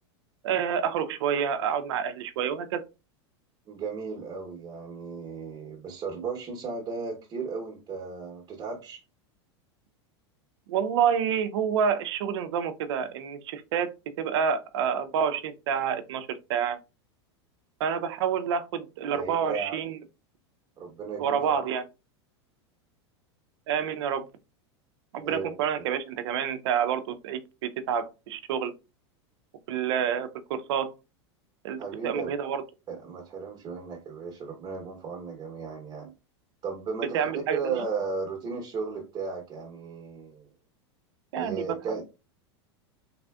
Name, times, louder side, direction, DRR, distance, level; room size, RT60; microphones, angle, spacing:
voice 1, 0.4-2.8 10.7-16.8 17.8-20.0 21.2-21.8 23.7-24.3 25.1-28.7 29.7-30.9 31.6-32.6 37.1-37.8 41.3-41.6, right 7 dB, 70° right, 0.4 m, -28 dB
voice 2, 3.7-9.0 19.1-19.7 20.8-21.6 25.2-25.5 31.8-32.3 32.9-36.1 36.6-40.5 41.3-42.0, right 5 dB, 30° right, 0.8 m, -35 dB
3.3 x 2.4 x 2.2 m
hypercardioid pair, 110°, 15 cm